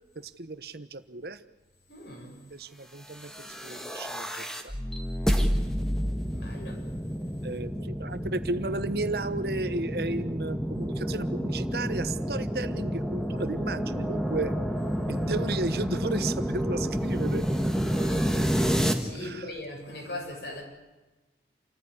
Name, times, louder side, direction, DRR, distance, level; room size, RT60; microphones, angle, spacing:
voice 1, 0.1-1.4 2.5-4.8 7.4-14.5 15.1-17.4 19.1-19.5, right 2 dB, 60° right, 12 dB, 1.2 m, -34 dB
voice 2, 1.9-2.4 6.3-6.9 17.9-18.3 18.9-20.6, left 1 dB, 70° left, 1 dB, 7.1 m, -40 dB
sound 1, 3.2-18.9, equal, 5° left, 1.7 m, -29 dB
28.0 x 14.5 x 9.9 m, 1.1 s
head